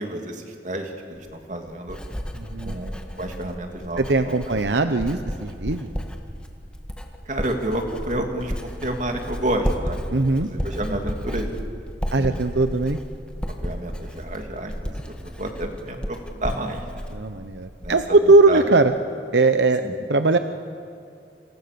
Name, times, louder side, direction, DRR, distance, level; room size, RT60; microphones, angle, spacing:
voice 1, 0.0-2.0 2.6-4.4 7.3-10.0 10.4-11.5 12.2-12.4 13.6-17.0 17.8-18.2 18.5-18.6 19.8-19.9, right 1 dB, 45° right, 3 dB, 2.9 m, -30 dB
Writing, 1.2-18.2 18.5-18.9, equal, 5° left, 1.8 m, -33 dB
voice 2, 2.3-2.8 4.0-5.9 10.1-10.5 12.1-13.0 17.1-18.9 19.3-19.8 20.1-20.4, right 3 dB, 75° right, 9 dB, 1.0 m, -19 dB
29.5 x 27.0 x 7.0 m, 2.4 s
head